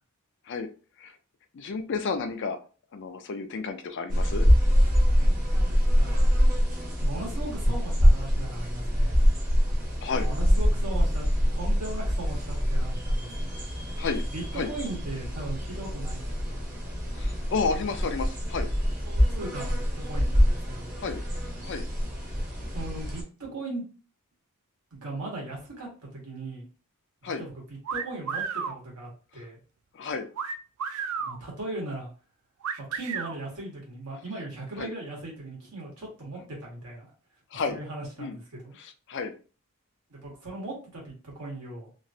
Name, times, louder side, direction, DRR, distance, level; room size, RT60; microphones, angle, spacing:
voice 1, 1.5-2.6 2.9-4.5 7.3-7.4 10.0-10.3 14.0-14.2 14.5-14.7 17.2-18.7 21.0-21.2 21.7-21.9 27.2-27.4 29.9-30.3 34.8-34.9 37.5-37.8 38.2-38.4 38.8-39.4, left 4 dB, 55° left, 8 dB, 0.4 m, -31 dB
sound 1, 4.1-23.2, equal, 40° right, 0.9 m, -25 dB
voice 2, 5.1-6.3 7.0-9.2 10.2-11.2 11.5-13.5 14.3-16.5 19.0-20.9 22.7-23.8 24.9-26.6 27.2-29.6 31.2-32.1 32.9-37.1 37.5-38.7 40.1-41.9, right 2 dB, 85° right, -2 dB, 1.5 m, -38 dB
sound 2, 27.9-28.8 30.4-31.4 32.6-33.4, right 6 dB, 70° right, 0.3 m, -32 dB
3.0 x 2.5 x 2.7 m, 0.37 s
head